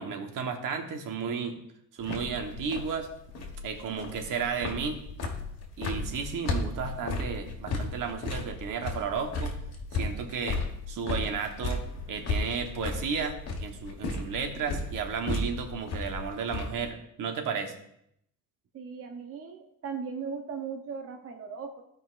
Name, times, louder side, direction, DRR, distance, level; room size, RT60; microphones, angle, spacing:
voice 1, 0.0-1.6 1.9-3.1 3.6-5.0 5.8-9.5 9.9-10.6 10.9-11.8 12.1-17.7, right 6 dB, 80° right, 5 dB, 1.2 m, -33 dB
sound 1, 2.0-16.9, left 3 dB, 50° left, 1.6 m, -34 dB
voice 2, 18.7-21.8, right 6 dB, 45° right, 4 dB, 0.8 m, -38 dB
15.5 x 5.2 x 2.5 m, 0.74 s
cardioid pair, 155°, 32 cm